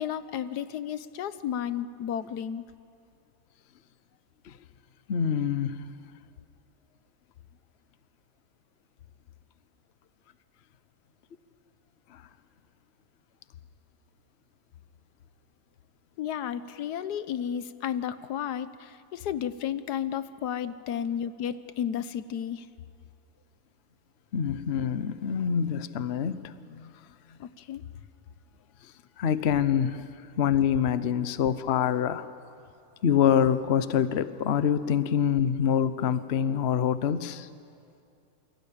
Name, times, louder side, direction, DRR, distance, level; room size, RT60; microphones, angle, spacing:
voice 1, 0.0-2.6 16.2-22.7 27.4-27.8, left 9 dB, 85° left, 13 dB, 1.4 m, -33 dB
voice 2, 5.1-5.9 12.1-12.2 24.3-26.9 29.2-30.0 30.4-32.3 33.0-37.5, left 8 dB, 50° left, 13 dB, 1.0 m, -26 dB
28.5 x 23.0 x 8.7 m, 2.5 s
omnidirectional pair, 1.7 m